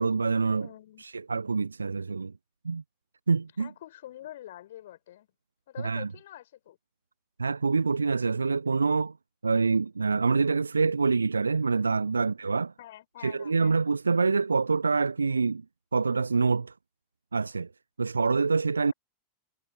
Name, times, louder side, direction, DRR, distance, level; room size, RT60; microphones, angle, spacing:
voice 1, 0.0-0.7 1.0-2.3 2.6-2.8 3.3-3.7 5.8-6.1 7.4-9.1 9.4-12.7 13.2-15.6 15.9-16.7 17.3-17.7 18.0-18.9, right 4 dB, 75° right, 0.4 m, -26 dB
voice 2, 0.6-1.0 3.6-5.3 5.7-6.8 12.8-13.8, left 13 dB, 60° left, 5.7 m, -46 dB
figure-of-eight pair, 90°, 0 cm